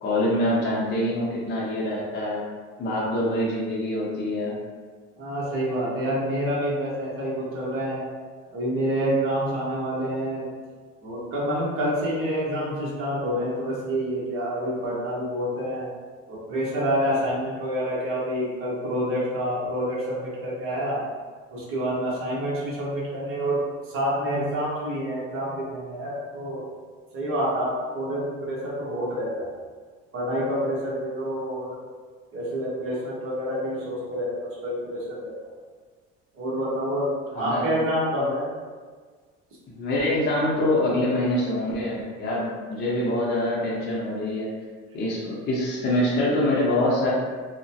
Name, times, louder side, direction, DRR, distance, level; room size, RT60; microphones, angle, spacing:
voice 1, 0.0-2.4 2.8-4.6 37.3-37.7 39.7-44.5 44.9-47.1, left 1 dB, 35° left, -5 dB, 0.7 m, -25 dB
voice 2, 5.2-8.0 8.5-10.4 11.0-15.9 16.3-21.0 21.5-23.6 23.9-26.6 27.1-29.5 30.1-31.7 32.3-35.3 36.3-37.1 37.3-38.5, equal, 45° right, -7 dB, 1.0 m, -27 dB
2.9 x 2.1 x 2.7 m, 1.5 s
cardioid pair, 130°, 30 cm